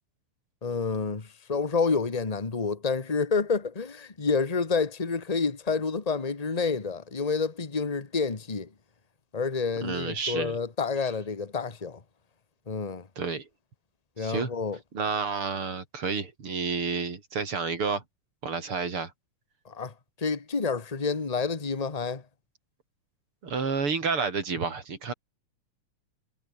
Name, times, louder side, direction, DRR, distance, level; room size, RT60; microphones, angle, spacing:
voice 1, 0.6-8.7 9.3-12.0 12.7-13.1 14.2-14.8 19.6-19.9 20.2-22.2, left 4 dB, 45° left, 0.4 m, -29 dB
voice 2, 9.8-10.6 13.2-13.5 14.2-14.5 14.9-18.0 18.4-19.1 23.4-25.1, right 5 dB, 45° right, 4.2 m, -30 dB
omnidirectional pair, 3.6 m